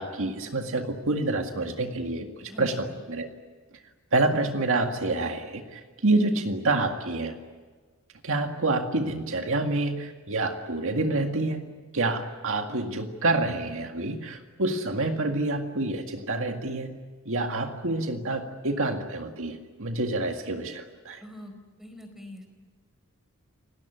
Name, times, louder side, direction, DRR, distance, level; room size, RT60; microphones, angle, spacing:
voice 1, 0.0-3.3 4.1-7.4 8.2-16.9 17.3-21.2, right 2 dB, 65° right, 4 dB, 2.0 m, -28 dB
voice 2, 2.5-3.0 21.2-21.5 21.8-22.5, equal, ahead, 5 dB, 4.6 m, -43 dB
29.5 x 18.5 x 9.4 m, 1.4 s
head